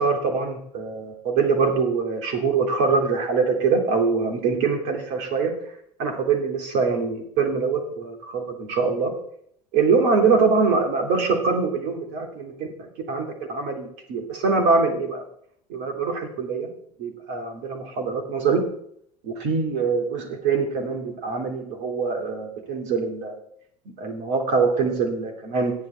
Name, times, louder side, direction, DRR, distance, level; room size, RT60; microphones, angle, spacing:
voice 1, 0.0-5.5 6.0-9.1 9.7-15.2 15.7-16.7 17.0-18.6 19.2-23.4 24.0-25.7, right 4 dB, 55° right, 3 dB, 3.0 m, -23 dB
13.5 x 10.0 x 4.5 m, 0.69 s
figure-of-eight pair, 70°, 21 cm